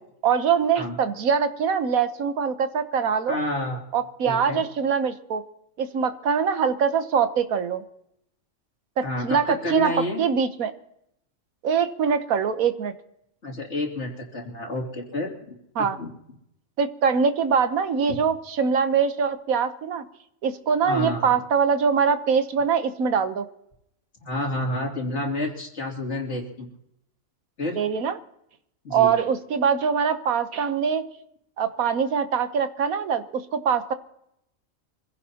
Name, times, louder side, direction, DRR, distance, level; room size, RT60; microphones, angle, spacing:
voice 1, 0.2-3.4 3.9-5.4 5.8-7.8 9.0-9.9 10.2-10.7 11.6-12.9 15.8-16.0 16.8-20.0 20.4-23.5 27.8-28.2 28.9-31.1 31.6-33.9, right 6 dB, 90° right, 10 dB, 1.4 m, -23 dB
voice 2, 3.3-3.8 4.2-4.6 9.0-10.2 13.4-16.1 18.1-18.2 20.8-21.3 24.2-26.7 27.6-27.8 28.8-29.2, left 1 dB, 55° left, 0 dB, 3.1 m, -30 dB
25.5 x 16.5 x 2.9 m, 0.78 s
omnidirectional pair, 1.4 m